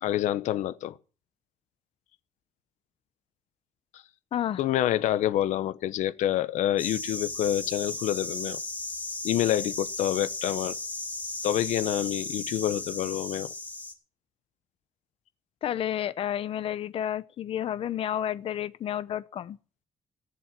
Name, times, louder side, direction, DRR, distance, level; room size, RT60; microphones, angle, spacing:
voice 1, 0.0-0.9 3.9-4.0 4.6-8.6 9.2-10.8 11.4-13.5, left 12 dB, 90° left, 0.9 m, -27 dB
voice 2, 4.3-4.6 15.6-19.6, left 10 dB, 50° left, 0.8 m, -31 dB
sound 1, 6.8-13.9, left 3 dB, 15° left, 3.0 m, -35 dB
17.5 x 7.7 x 7.5 m
cardioid pair, 170°, 12 cm